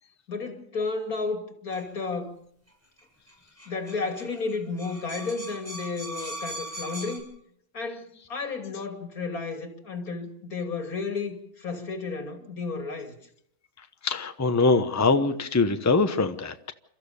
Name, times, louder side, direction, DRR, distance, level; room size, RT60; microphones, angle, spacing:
voice 1, 0.3-2.4 3.7-7.3 7.7-13.2, left 4 dB, 85° left, 3.2 m, -32 dB
sound 1, 1.7-1.9 3.0-3.1 3.3-3.4 3.6-7.2, right 1 dB, 10° right, 7.2 m, -39 dB
voice 2, 14.0-16.7, left 3 dB, 15° left, 0.9 m, -23 dB
29.0 x 14.0 x 7.0 m
omnidirectional pair, 1.5 m